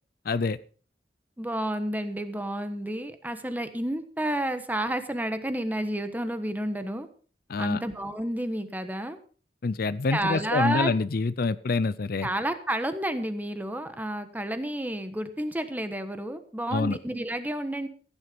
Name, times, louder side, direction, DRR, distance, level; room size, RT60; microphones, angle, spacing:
voice 1, 0.3-0.6 7.5-7.8 9.6-12.3 16.7-17.0, left 3 dB, 55° left, 17 dB, 0.5 m, -26 dB
voice 2, 1.4-7.1 7.6-9.2 10.1-10.9 12.2-17.9, right 1 dB, 10° right, 9 dB, 1.2 m, -30 dB
15.0 x 9.8 x 5.2 m, 0.40 s
head